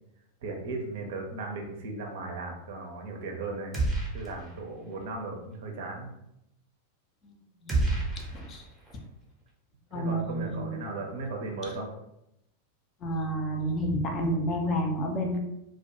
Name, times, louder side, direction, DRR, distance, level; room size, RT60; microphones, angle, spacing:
voice 1, 0.4-3.8 4.1-6.1 9.9-11.9, right 3 dB, 55° right, 1 dB, 0.5 m, -36 dB
sound 1, 3.7-4.6 4.9-5.0 7.7-9.0, right 2 dB, 10° right, 0.7 m, -30 dB
voice 2, 8.2-8.7 9.9-10.8 13.0-15.4, equal, 30° left, 2 dB, 0.4 m, -30 dB
2.2 x 2.1 x 2.8 m, 0.85 s
figure-of-eight pair, 90°, 0 cm